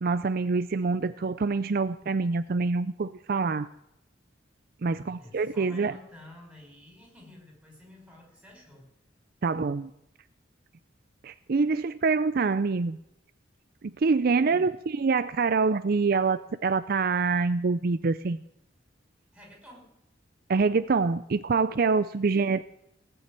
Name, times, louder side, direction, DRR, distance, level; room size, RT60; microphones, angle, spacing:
voice 1, 0.0-3.7 4.8-5.9 9.4-9.9 11.2-13.0 14.0-18.4 20.5-22.6, right 4 dB, 50° right, 13 dB, 0.5 m, -25 dB
voice 2, 4.8-8.9 14.5-14.7 19.3-19.9 22.1-22.3, left 1 dB, 5° right, -1 dB, 5.4 m, -51 dB
18.0 x 7.0 x 9.7 m, 0.80 s
head